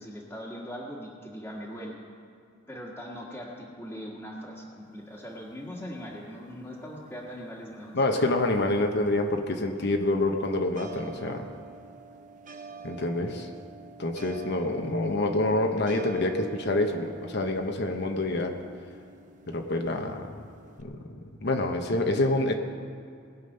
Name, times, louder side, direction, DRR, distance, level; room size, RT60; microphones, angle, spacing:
voice 1, 0.0-2.0 2.7-8.0, equal, 10° left, -5 dB, 1.7 m, -40 dB
sound 1, 4.8-20.8, right 4 dB, 40° right, 0.7 m, -49 dB
voice 2, 7.9-11.5 12.8-13.5 14.0-18.6 19.5-20.5 20.8-21.1 21.4-22.5, left 2 dB, 60° left, 4 dB, 1.0 m, -27 dB
20.0 x 7.3 x 5.5 m, 2.5 s
head